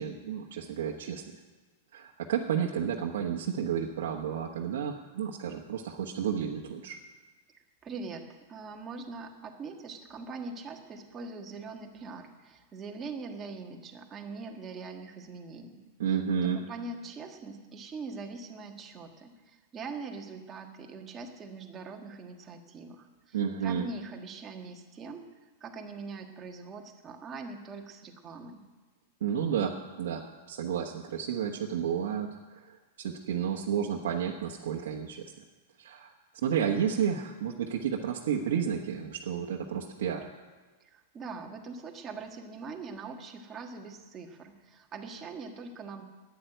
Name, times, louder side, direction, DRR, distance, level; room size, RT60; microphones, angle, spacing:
voice 1, 0.0-1.4 1.9-7.0 16.0-16.6 23.3-23.8 29.2-35.2 35.8-36.1 36.4-40.3, right 8 dB, 75° right, -1 dB, 1.3 m, -31 dB
voice 2, 7.8-15.8 16.4-23.4 23.6-25.3 25.6-28.6 40.9-46.0, right 4 dB, 20° right, 3 dB, 1.5 m, -42 dB
11.5 x 9.5 x 9.3 m, 1.3 s
supercardioid pair, 155°, 0 cm